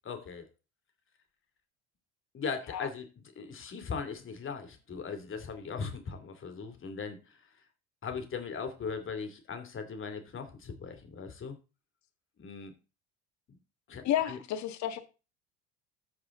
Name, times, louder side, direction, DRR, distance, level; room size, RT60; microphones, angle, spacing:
voice 1, 0.0-0.4 2.3-3.1 3.3-7.5 8.0-11.6 12.4-12.7 13.9-14.4, left 5 dB, 40° left, 2.8 m, -39 dB
voice 2, 14.0-15.0, left 11 dB, 60° left, 1.9 m, -31 dB
14.5 x 4.9 x 3.8 m
supercardioid pair, 85°, 32 cm